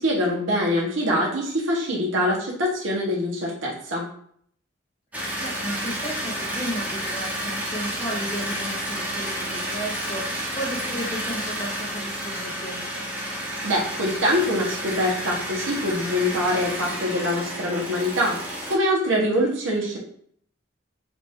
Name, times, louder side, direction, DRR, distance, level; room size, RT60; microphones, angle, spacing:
voice 1, 0.0-4.1 13.3-20.0, equal, 80° right, -2 dB, 1.3 m, -24 dB
voice 2, 5.1-13.0, equal, 35° left, -6 dB, 1.6 m, -34 dB
sound 1, 5.1-18.8, equal, 10° right, 0.9 m, -31 dB
5.0 x 2.8 x 3.7 m, 0.62 s
head